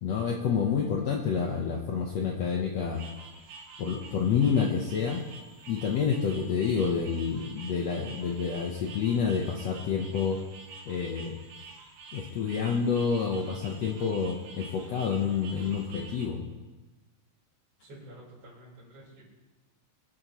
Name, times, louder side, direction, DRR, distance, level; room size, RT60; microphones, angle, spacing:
voice 1, 0.0-3.0 3.8-5.2 5.7-10.4 10.9-11.4 12.1-16.5, left 6 dB, 80° left, 0 dB, 1.5 m, -28 dB
sound 1, 2.9-16.3, right 3 dB, 65° right, 2.7 m, -48 dB
voice 2, 17.8-19.2, right 1 dB, 35° right, -6 dB, 4.6 m, -49 dB
24.0 x 8.9 x 3.1 m, 1.2 s
omnidirectional pair, 4.4 m